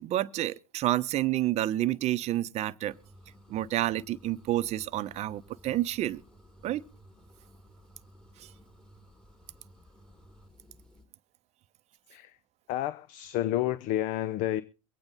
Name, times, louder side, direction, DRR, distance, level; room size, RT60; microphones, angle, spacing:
voice 1, 0.0-2.9 3.5-6.2 6.6-6.8 8.4-8.5, right 14 dB, 35° right, 0.7 m, -29 dB
sound 1, 2.9-11.1, equal, 5° left, 2.3 m, -56 dB
voice 2, 12.7-14.6, left 13 dB, 45° left, 0.6 m, -30 dB
23.0 x 8.7 x 4.0 m
hypercardioid pair, 95°, 18 cm